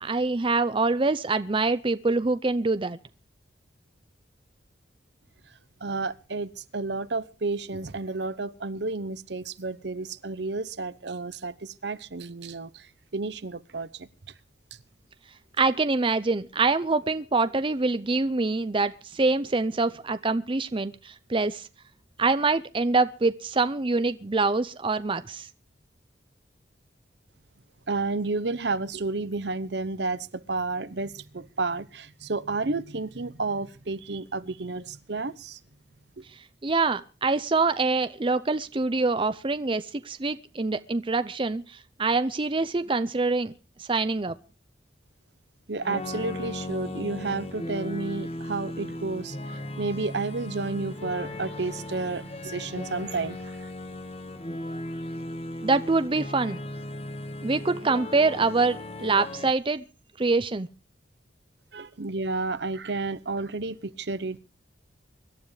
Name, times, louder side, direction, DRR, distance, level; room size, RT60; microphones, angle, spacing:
voice 1, 0.0-3.0 15.6-21.7 22.2-25.5 36.6-43.5 43.8-44.4 55.6-56.6 57.4-59.8 60.2-60.7, right 3 dB, 30° right, 0.6 m, -25 dB
voice 2, 5.8-14.1 27.9-35.6 36.2-36.3 45.7-53.6 61.7-64.4, right 3 dB, 65° right, 0.9 m, -31 dB
sound 1, 45.8-59.5, left 1 dB, 35° left, 1.4 m, -36 dB
25.0 x 12.0 x 3.3 m
head